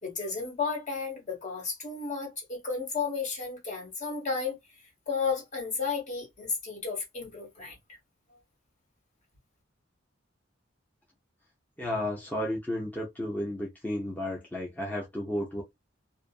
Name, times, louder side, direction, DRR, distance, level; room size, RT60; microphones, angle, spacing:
voice 1, 0.0-4.6 5.1-8.0, left 5 dB, 40° left, 1.4 m, -33 dB
voice 2, 11.8-15.6, left 1 dB, 10° left, 0.6 m, -33 dB
2.6 x 2.4 x 2.3 m
head